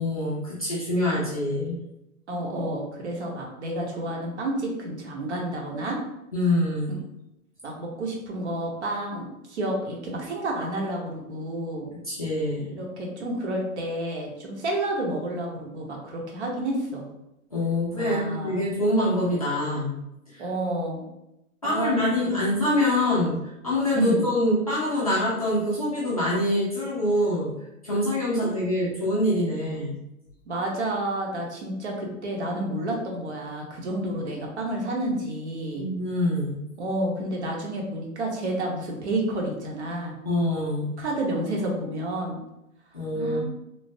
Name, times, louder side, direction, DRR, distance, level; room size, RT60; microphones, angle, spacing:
voice 1, 0.0-1.8 6.3-6.9 12.0-12.7 17.5-20.0 20.3-20.4 21.6-27.5 27.8-30.0 35.7-36.6 40.2-40.9 42.9-43.4, left 1 dB, 30° left, -9 dB, 0.4 m, -25 dB
voice 2, 2.3-6.0 7.6-11.9 12.7-17.1 18.0-18.7 20.4-21.1 21.6-22.4 23.9-24.2 30.5-35.9 36.8-40.2 41.0-42.4 43.1-43.4, right 1 dB, 50° right, 0 dB, 0.8 m, -30 dB
3.1 x 2.0 x 2.6 m, 0.86 s
hypercardioid pair, 165°, 43 cm